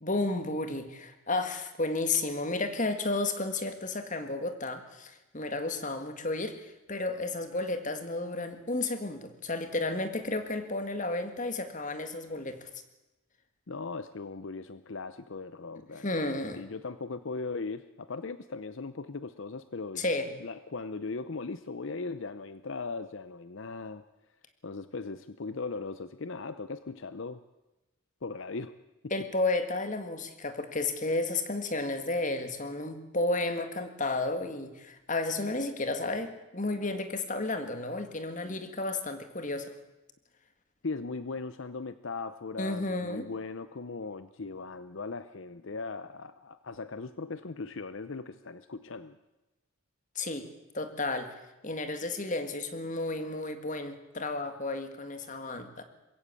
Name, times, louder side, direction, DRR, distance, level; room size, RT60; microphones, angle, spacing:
voice 1, 0.0-12.7 16.0-16.6 20.0-20.3 29.1-39.7 42.6-43.3 50.2-50.5 50.7-51.3 51.6-55.8, left 2 dB, 35° left, 8 dB, 1.9 m, -32 dB
voice 2, 13.7-16.1 16.5-20.0 20.4-24.0 24.6-27.4 28.2-28.7 40.8-49.2, left 4 dB, 60° left, 13 dB, 0.7 m, -38 dB
21.5 x 16.0 x 8.4 m, 1.0 s
head